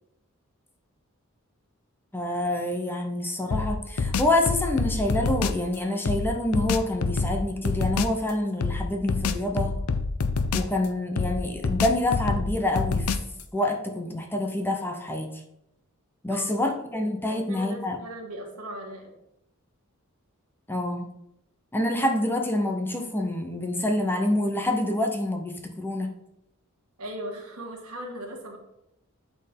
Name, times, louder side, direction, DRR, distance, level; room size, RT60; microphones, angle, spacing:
voice 1, 2.1-9.8 10.5-13.1 13.5-15.4 16.2-18.0 20.7-21.1 21.7-26.1, left 1 dB, 10° left, 3 dB, 0.8 m, -27 dB
sound 1, 3.5-5.6 6.1-8.2 8.6-10.9 11.2-13.4, left 4 dB, 80° left, 0.5 m, -27 dB
voice 2, 17.3-19.1 27.0-28.6, right 1 dB, 75° right, 2 dB, 1.7 m, -38 dB
8.8 x 4.4 x 5.3 m, 0.83 s
head